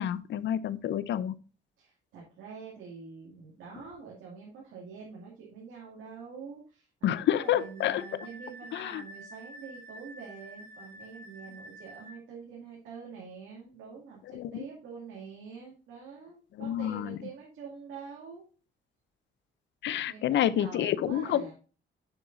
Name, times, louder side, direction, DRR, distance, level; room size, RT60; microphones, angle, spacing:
voice 1, 0.0-1.3 7.0-8.0 8.7-9.0 14.3-14.5 16.6-17.1 19.8-21.4, left 11 dB, 65° left, 0.6 m, -28 dB
voice 2, 1.8-18.4 20.1-21.5, right 5 dB, 85° right, 2.3 m, -46 dB
Wind instrument woodwind instrument, 7.4-12.2, right 1 dB, 55° right, 1.6 m, -48 dB
7.2 x 6.8 x 2.6 m
cardioid pair, 90°, 20 cm